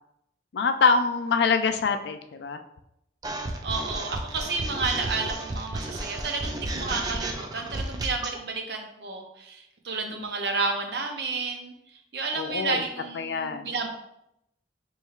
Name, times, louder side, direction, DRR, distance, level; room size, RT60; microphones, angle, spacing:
voice 1, 0.5-2.6 10.0-10.1 12.4-12.8 13.1-13.7, left 5 dB, 65° left, 8 dB, 0.3 m, -25 dB
sound 1, 3.2-8.4, right 2 dB, 20° right, 0.3 m, -33 dB
voice 2, 3.6-13.9, right 4 dB, 65° right, 4 dB, 0.6 m, -31 dB
4.6 x 3.1 x 2.3 m, 0.80 s
head